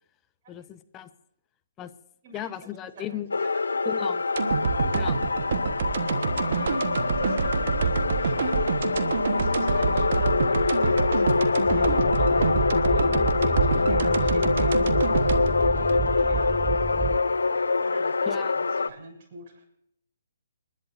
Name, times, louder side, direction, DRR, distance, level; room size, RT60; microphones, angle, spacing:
voice 1, 0.5-1.1 1.8-1.9 2.3-3.3 3.8-4.2 4.9-5.2 18.3-18.5, left 11 dB, 20° left, 12 dB, 0.9 m, -35 dB
voice 2, 2.2-2.6 2.9-3.9 6.3-17.1 17.8-19.6, right 2 dB, 40° right, 0 dB, 7.0 m, -46 dB
sound 1, 3.3-18.9, left 4 dB, 80° left, 0.6 m, -25 dB
sound 2, 4.4-16.6 17.0-17.1, right 6 dB, 60° right, 1.2 m, -27 dB
sound 3, 11.7-17.5, right 7 dB, 10° right, 0.7 m, -31 dB
29.0 x 11.0 x 2.6 m, 0.73 s
hypercardioid pair, 140°, 0 cm